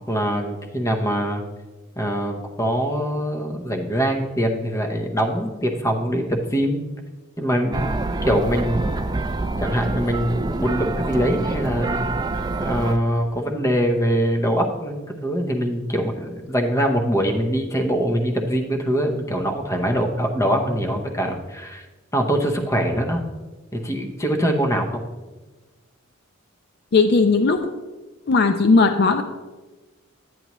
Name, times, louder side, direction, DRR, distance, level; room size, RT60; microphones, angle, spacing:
voice 1, 0.1-1.4 2.0-6.9 7.4-7.9 8.2-9.1 9.6-12.0 12.6-21.9 22.1-23.2 23.7-25.1, equal, 15° left, 3 dB, 0.8 m, -23 dB
sound 1, 7.7-13.0, right 2 dB, 20° right, 0.3 m, -26 dB
voice 2, 26.9-27.6 28.3-29.2, left 4 dB, 50° left, 7 dB, 0.4 m, -17 dB
9.8 x 9.4 x 3.0 m, 1.2 s
head